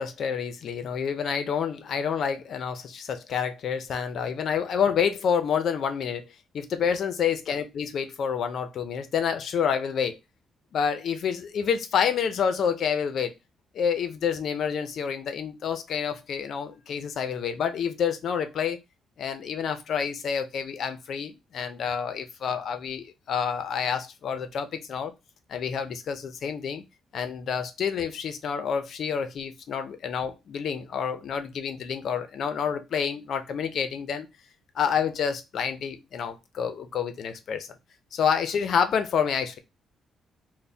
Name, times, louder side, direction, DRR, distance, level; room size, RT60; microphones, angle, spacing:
voice 1, 0.0-10.2 10.7-13.3 13.7-18.8 19.2-25.1 25.5-26.8 27.1-34.3 34.7-37.7 38.1-39.6, left 7 dB, 50° left, 0.5 m, -28 dB
4.1 x 2.1 x 3.4 m
cardioid pair, 175°, 0 cm